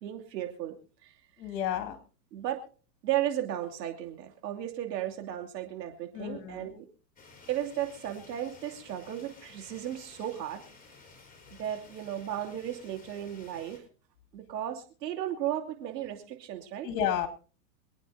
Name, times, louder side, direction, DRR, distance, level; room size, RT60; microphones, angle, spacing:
voice 1, 0.0-0.7 2.3-2.6 3.0-6.8 7.5-10.6 11.6-13.8 14.3-16.9, right 11 dB, 80° right, 3 dB, 2.8 m, -35 dB
voice 2, 1.4-2.0 6.1-6.7 16.8-17.3, left 9 dB, 45° left, 7 dB, 2.3 m, -31 dB
sound 1, 7.2-13.8, left 4 dB, 15° left, 4.2 m, -54 dB
27.0 x 9.2 x 2.7 m, 0.38 s
hypercardioid pair, 120°, 49 cm